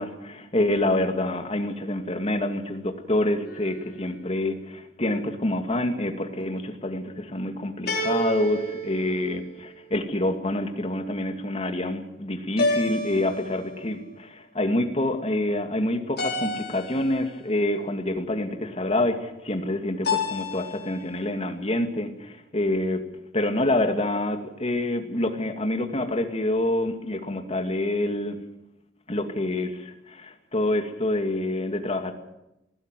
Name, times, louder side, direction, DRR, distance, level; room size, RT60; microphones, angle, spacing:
voice 1, 0.0-23.0 23.3-28.4 29.1-32.1, left 1 dB, 35° left, 6 dB, 2.3 m, -27 dB
sound 1, 3.5-4.1 7.9-9.9 12.6-14.0 16.2-17.4 20.0-21.0, left 1 dB, 60° left, 4.9 m, -30 dB
20.0 x 15.5 x 9.2 m, 0.88 s
head